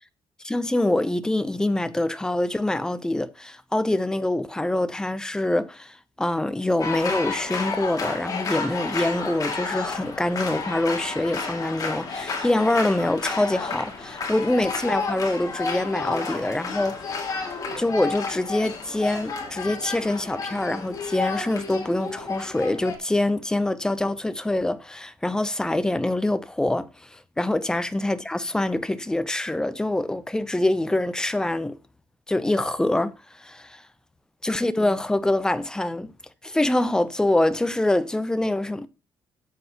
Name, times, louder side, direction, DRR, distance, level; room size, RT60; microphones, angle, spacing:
voice 1, 0.4-31.8 32.3-33.8 34.4-36.1 36.4-38.9, left 1 dB, 5° left, 0.7 m, -25 dB
sound 1, 6.8-23.0, left 4 dB, 40° left, 2.4 m, -31 dB
12.0 x 7.8 x 3.0 m
cardioid pair, 130°, 9 cm